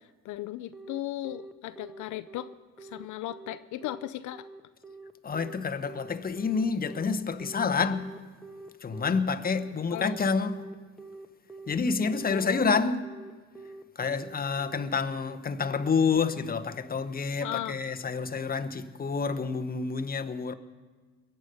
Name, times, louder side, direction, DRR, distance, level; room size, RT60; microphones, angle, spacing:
voice 1, 0.2-2.5 2.8-4.5 9.9-10.2 12.3-13.0 17.4-17.8, left 14 dB, 80° left, 0.5 m, -37 dB
Telephone, 0.7-16.9, right 3 dB, ahead, 1.0 m, -46 dB
voice 2, 5.2-8.2 8.8-10.6 11.7-13.0 14.0-20.5, left 5 dB, 30° left, 0.9 m, -28 dB
22.5 x 7.9 x 5.4 m
cardioid pair, 90°, 30 cm